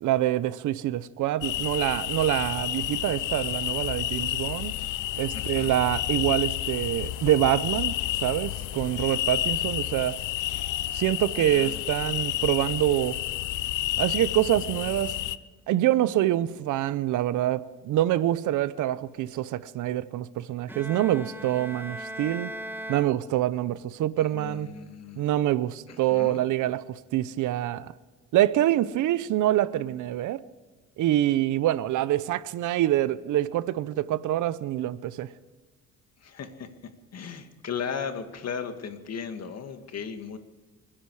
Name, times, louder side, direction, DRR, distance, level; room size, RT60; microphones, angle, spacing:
voice 1, 0.0-4.7 5.2-10.2 10.9-13.2 14.0-15.1 15.7-22.5 22.9-24.7 25.2-27.9 28.3-30.4 31.0-35.3, right 13 dB, 85° right, 17 dB, 0.8 m, -26 dB
sound 1, 1.4-15.4, left 14 dB, 85° left, 0.7 m, -30 dB
voice 2, 5.3-5.8 10.5-10.7 11.5-12.0 24.3-25.3 25.9-26.4 36.2-40.4, left 6 dB, 55° left, 7 dB, 2.1 m, -37 dB
Bowed string instrument, 20.7-23.8, right 1 dB, 5° right, 1.0 m, -39 dB
28.5 x 10.0 x 4.8 m, 1.4 s
cardioid pair, 90°, 30 cm